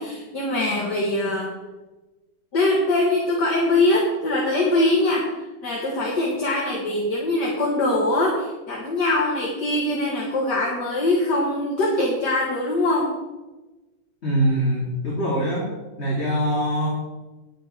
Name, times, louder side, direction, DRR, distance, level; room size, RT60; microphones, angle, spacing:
voice 1, 0.0-1.5 2.5-5.3 5.6-13.1, left 2 dB, 55° left, -3 dB, 2.4 m, -22 dB
voice 2, 14.2-15.7 16.0-16.9, right 1 dB, 30° left, -6 dB, 3.1 m, -23 dB
10.5 x 9.5 x 6.1 m, 1.1 s
omnidirectional pair, 2.2 m